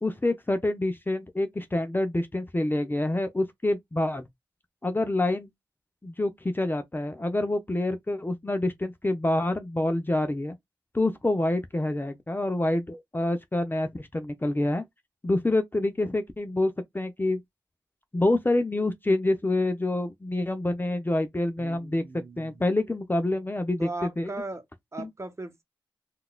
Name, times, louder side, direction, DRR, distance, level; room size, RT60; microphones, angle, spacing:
voice 1, 0.0-4.3 4.8-5.5 6.0-10.6 10.9-14.8 15.2-17.4 18.1-22.0 22.4-23.9 24.2-24.3 25.0-25.1, left 2 dB, 25° left, 0.6 m, -27 dB
voice 2, 21.6-22.6 23.8-24.6 24.9-25.6, right 2 dB, 35° right, 1.0 m, -38 dB
3.8 x 2.4 x 2.2 m
cardioid pair, 40°, 9 cm